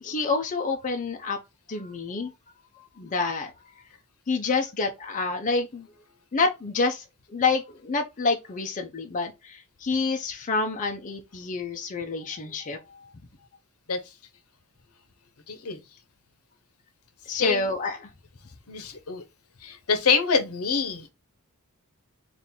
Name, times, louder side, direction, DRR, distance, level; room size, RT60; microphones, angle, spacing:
voice 1, 0.0-1.4 1.7-2.3 3.0-3.5 4.3-5.9 6.3-7.0 7.3-12.8 17.3-18.0, left 4 dB, 35° left, 0.5 m, -28 dB
voice 2, 15.5-15.8 17.4-17.6 18.7-19.2 19.6-21.1, left 5 dB, 70° left, 0.8 m, -25 dB
3.7 x 2.5 x 4.2 m
head